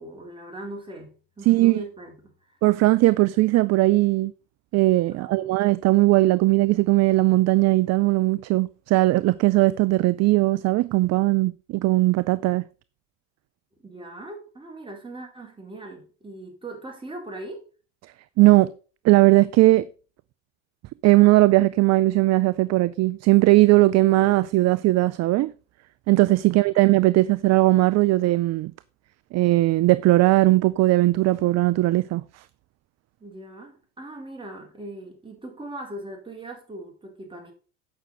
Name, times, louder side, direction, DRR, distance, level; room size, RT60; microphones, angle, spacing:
voice 1, 0.0-2.5 5.2-5.5 13.8-17.6 33.2-37.5, right 1 dB, 15° right, 4.4 m, -40 dB
voice 2, 1.5-1.8 2.6-4.3 4.7-12.6 18.4-18.7 19.0-19.9 21.0-25.5 26.1-28.7 29.3-32.4, right 19 dB, 45° right, 0.5 m, -19 dB
8.7 x 6.1 x 5.5 m
supercardioid pair, 90°, 38 cm